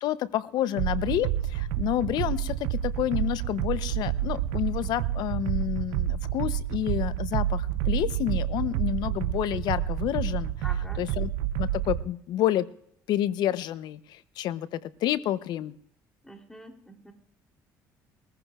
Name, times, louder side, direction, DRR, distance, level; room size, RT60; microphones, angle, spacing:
voice 1, 0.0-10.5 11.0-11.3 11.6-12.7 13.1-15.7, left 12 dB, 70° left, 16 dB, 0.7 m, -29 dB
sound 1, 0.8-12.0, right 11 dB, 90° right, 0.6 m, -29 dB
voice 2, 10.6-11.1 16.2-17.1, equal, 5° left, 3 dB, 3.2 m, -45 dB
21.5 x 14.5 x 2.4 m, 0.67 s
cardioid pair, 90°, 7 cm